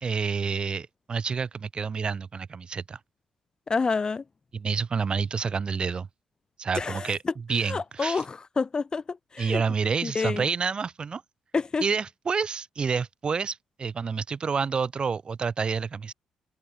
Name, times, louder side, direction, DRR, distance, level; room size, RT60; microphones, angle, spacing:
voice 1, 0.0-3.0 4.5-6.1 6.6-8.2 9.4-11.2 11.8-16.1, right 5 dB, 40° right, 0.6 m, -29 dB
voice 2, 3.7-4.2 6.7-7.3 7.6-9.6 10.0-10.4 11.5-11.8, left 4 dB, 30° left, 0.4 m, -28 dB
figure-of-eight pair, 40°, 3 cm